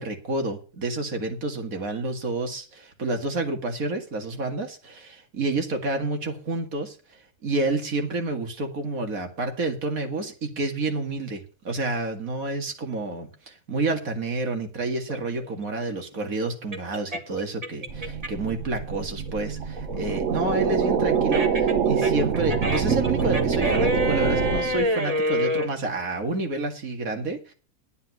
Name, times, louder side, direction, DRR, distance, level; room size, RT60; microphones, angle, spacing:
voice 1, 0.0-7.0 7.4-27.5, right 2 dB, 85° right, 4 dB, 2.5 m, -29 dB
sound 1, 15.1-18.5 18.9-25.7, equal, 30° right, 1.4 m, -28 dB
sound 2, 17.9-24.9, right 6 dB, 65° right, 1.4 m, -25 dB
10.5 x 9.6 x 6.2 m, 0.37 s
omnidirectional pair, 1.4 m